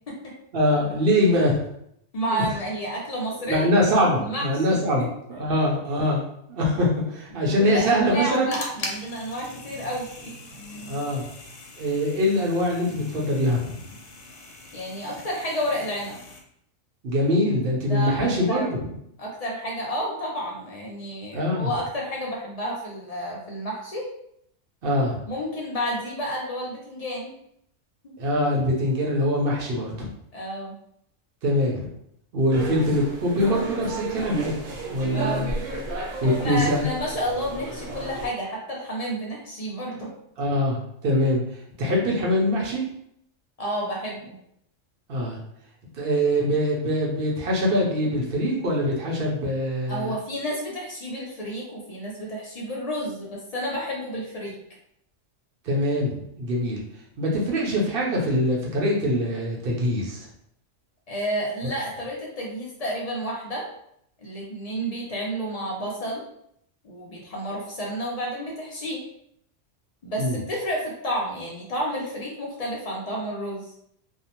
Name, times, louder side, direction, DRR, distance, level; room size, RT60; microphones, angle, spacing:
voice 1, 0.5-1.6 2.3-2.5 3.5-8.5 10.9-11.2 11.8-13.7 17.0-18.7 21.3-21.7 24.8-25.2 28.2-30.1 31.4-31.9 32.3-34.6 34.9-35.5 36.2-36.8 40.4-42.9 45.1-45.4 46.0-50.1 55.6-56.1 56.4-56.8 57.2-60.3 70.2-70.4, equal, 55° right, -2 dB, 0.7 m, -23 dB
voice 2, 2.1-3.7 4.2-5.1 7.3-10.3 14.7-16.2 17.9-18.7 19.2-24.1 25.3-27.4 28.0-28.1 30.3-30.8 35.1-35.5 36.2-40.1 43.6-44.4 49.9-54.6 61.1-63.7 64.2-66.2 66.8-69.0 70.0-73.7, equal, 55° left, -3 dB, 0.4 m, -31 dB
sound 1, 8.0-16.4, left 2 dB, 80° left, 0.9 m, -41 dB
sound 2, 32.5-38.3, right 3 dB, 80° right, 1.0 m, -33 dB
2.6 x 2.0 x 2.8 m, 0.72 s
omnidirectional pair, 1.3 m